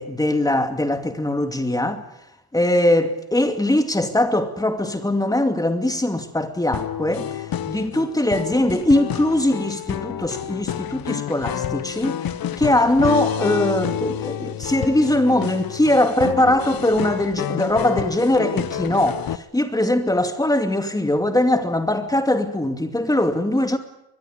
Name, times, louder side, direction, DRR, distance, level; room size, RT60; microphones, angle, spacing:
voice 1, 0.0-2.1 2.5-12.3 12.6-23.8, left 1 dB, 10° left, 2.5 m, -21 dB
sound 1, 6.7-19.4, left 11 dB, 65° left, 1.0 m, -29 dB
23.0 x 21.0 x 9.4 m
wide cardioid pair, 145°, 37 cm